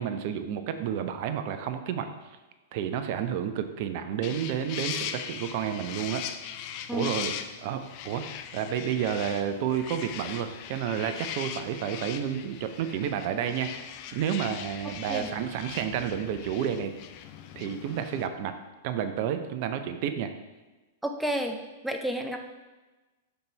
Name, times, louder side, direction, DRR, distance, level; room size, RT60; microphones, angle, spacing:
voice 1, 0.0-2.1 2.7-6.2 6.9-7.3 7.6-8.2 8.5-16.9 17.6-18.5 18.8-20.3, right 9 dB, 50° right, 8 dB, 0.5 m, -30 dB
sound 1, 4.2-18.3, left 9 dB, 45° left, 0.4 m, -40 dB
voice 2, 21.0-21.6 21.8-22.4, equal, 5° right, 4 dB, 0.6 m, -30 dB
5.3 x 4.0 x 4.4 m, 1.2 s
figure-of-eight pair, 100°, 0 cm